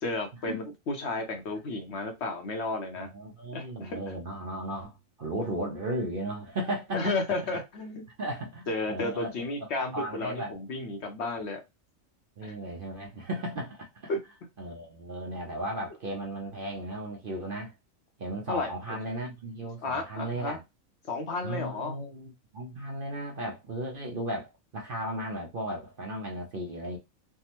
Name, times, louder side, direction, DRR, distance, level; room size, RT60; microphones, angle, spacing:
voice 1, 0.0-3.1 3.5-4.1 6.9-8.0 8.7-11.6 12.4-12.5 14.1-14.2 18.5-19.0 19.8-20.6 21.1-21.9, left 2 dB, 60° left, 0.9 m, -33 dB
voice 2, 3.0-7.1 8.2-9.3 9.8-10.5 12.4-14.1 14.6-17.7 18.2-20.6 21.4-27.0, right 1 dB, 55° right, 0.7 m, -35 dB
3.4 x 2.1 x 2.8 m
omnidirectional pair, 1.4 m